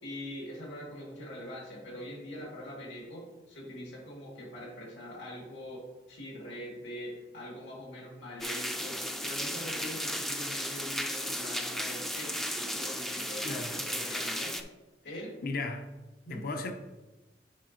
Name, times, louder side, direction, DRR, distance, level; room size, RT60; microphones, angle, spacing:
voice 1, 0.0-5.8 6.1-14.6 15.0-15.4 16.2-16.4, equal, 85° left, 2.3 m, -43 dB
sound 1, 8.4-14.6, equal, ahead, 0.3 m, -35 dB
voice 2, 15.4-15.9 16.3-16.7, left 3 dB, 50° left, 0.5 m, -35 dB
9.4 x 4.9 x 2.8 m
head